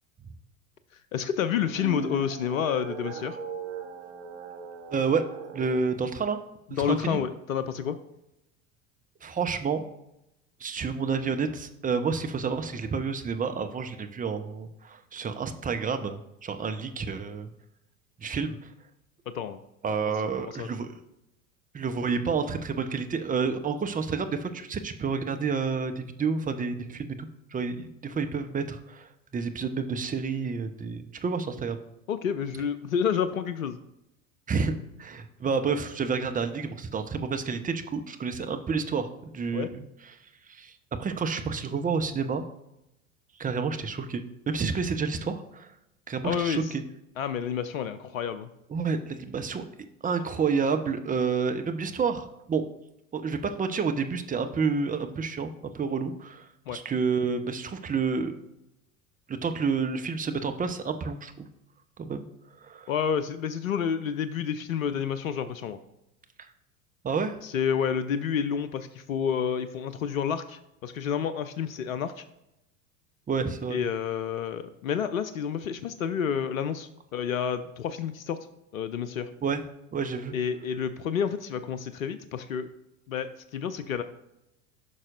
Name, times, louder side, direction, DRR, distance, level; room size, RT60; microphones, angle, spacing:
voice 1, 1.1-3.4 6.7-8.0 19.3-19.6 20.4-20.7 32.1-33.8 38.5-38.6 39.5-39.7 46.2-46.6 47.2-48.5 56.7-56.8 62.9-65.8 67.4-72.2 73.7-78.4 78.7-79.3 80.3-82.7 83.1-84.0, left 8 dB, 75° left, 12 dB, 0.7 m, -29 dB
sound 1, 1.5-5.9, right 6 dB, 65° right, 1.2 m, -39 dB
voice 2, 4.9-5.2 5.5-6.4 6.8-7.2 9.2-9.8 10.6-17.5 18.2-18.6 19.8-20.9 21.7-31.8 34.5-39.8 40.5-42.4 43.4-45.7 46.1-46.8 48.7-49.7 50.0-52.7 53.1-55.5 55.7-58.3 59.3-61.5 62.0-62.2 62.6-62.9 66.4-66.5 67.0-67.4 73.3-73.8 79.4-79.6 79.9-80.4, right 5 dB, 20° right, 7 dB, 0.9 m, -29 dB
15.0 x 6.1 x 2.6 m, 0.86 s
figure-of-eight pair, 75°, 41 cm